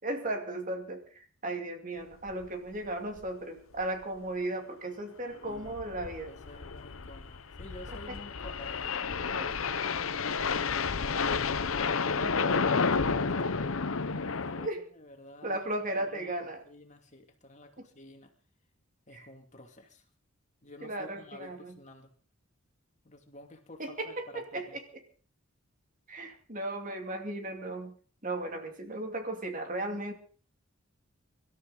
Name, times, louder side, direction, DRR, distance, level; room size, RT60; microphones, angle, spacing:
voice 1, 0.0-6.3 12.2-12.7 14.5-14.8 15.4-16.6 17.8-17.9 19.1-19.3 20.8-21.7 23.8-25.0 26.1-27.9 28.2-30.1, right 1 dB, 40° right, 4 dB, 2.6 m, -36 dB
sound 1, 2.3-2.5 2.7-2.8 3.2-3.3 3.8-4.0 5.3-14.7, left 5 dB, 75° left, 0.9 m, -31 dB
voice 2, 5.4-5.8 6.3-11.3 11.6-13.6 14.1-15.6 16.0-18.3 19.1-20.1 20.6-22.1 23.0-24.8, left 1 dB, 35° left, 4 dB, 2.6 m, -50 dB
24.5 x 13.0 x 4.0 m, 0.40 s
head